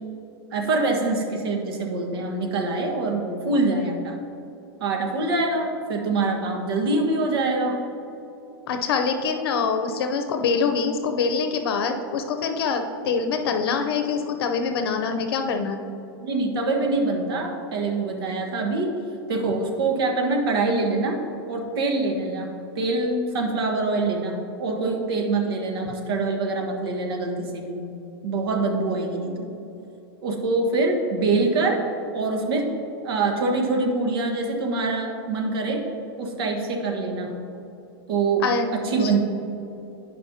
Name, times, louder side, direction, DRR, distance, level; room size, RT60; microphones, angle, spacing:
voice 1, 0.5-4.2 4.8-7.8 16.2-18.9 19.3-21.2 21.5-27.8 28.2-29.5 30.2-31.8 32.1-32.7 33.0-35.8 36.2-37.3 38.1-38.4 38.7-39.2, right 3 dB, 75° right, 2 dB, 1.3 m, -24 dB
voice 2, 8.7-15.8 38.4-38.7 39.0-39.1, left 5 dB, 75° left, 6 dB, 0.6 m, -24 dB
10.5 x 5.3 x 2.8 m, 2.9 s
supercardioid pair, 135°, 13 cm